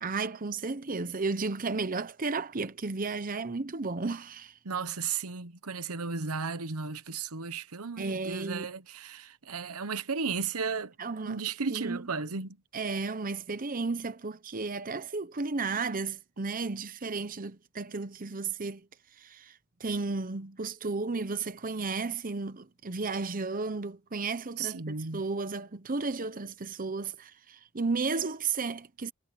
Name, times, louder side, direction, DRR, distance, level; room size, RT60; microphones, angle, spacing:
voice 1, 0.0-4.6 8.0-8.7 11.0-11.4 11.7-12.0 12.7-18.9 19.2-29.1, right 4 dB, 40° right, 0.9 m, -33 dB
voice 2, 4.6-10.9 11.3-12.6 24.6-25.2, right 5 dB, 80° right, 1.1 m, -34 dB
head